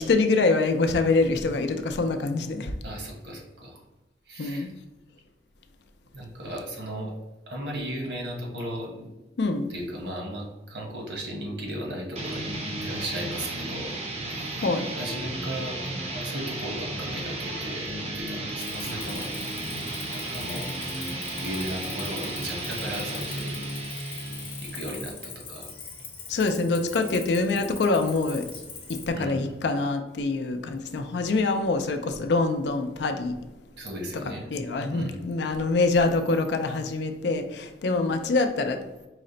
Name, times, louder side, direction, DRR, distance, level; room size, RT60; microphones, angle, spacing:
voice 1, 0.0-2.7 4.4-4.7 9.4-9.7 14.6-14.9 26.3-28.5 28.9-33.4 34.5-38.9, left 3 dB, 75° left, 7 dB, 0.4 m, -25 dB
voice 2, 2.8-3.8 4.2-4.7 6.1-7.1 7.5-9.1 9.7-13.9 14.9-15.8 16.1-19.4 20.1-20.7 21.4-23.6 24.6-25.7 29.1-29.5 33.8-34.5 34.9-35.2, right 1 dB, 80° right, -1 dB, 1.2 m, -36 dB
sound 1, 12.2-25.0, right 1 dB, 35° right, 0.5 m, -34 dB
Cricket, 18.6-29.1, left 5 dB, 30° left, 0.7 m, -41 dB
4.9 x 2.1 x 3.8 m, 1.0 s
head